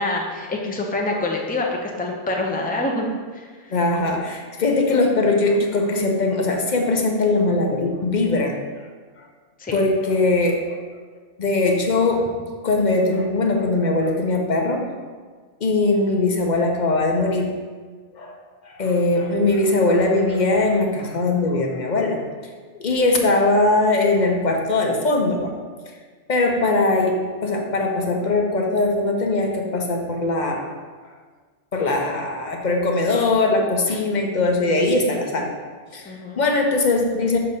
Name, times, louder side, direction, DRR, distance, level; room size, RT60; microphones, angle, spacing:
voice 1, 0.0-3.1 3.3-3.7 9.6-9.8 36.0-36.4, left 2 dB, 10° left, 0 dB, 0.4 m, -26 dB
voice 2, 3.7-8.6 9.7-10.6 11.4-12.3 12.6-14.9 15.6-17.5 18.1-18.4 18.6-22.2 22.7-25.5 26.3-27.2 27.4-30.7 31.7-35.5 35.9-37.4, left 2 dB, 45° left, 1 dB, 0.7 m, -20 dB
6.6 x 2.8 x 5.4 m, 1.5 s
omnidirectional pair, 1.2 m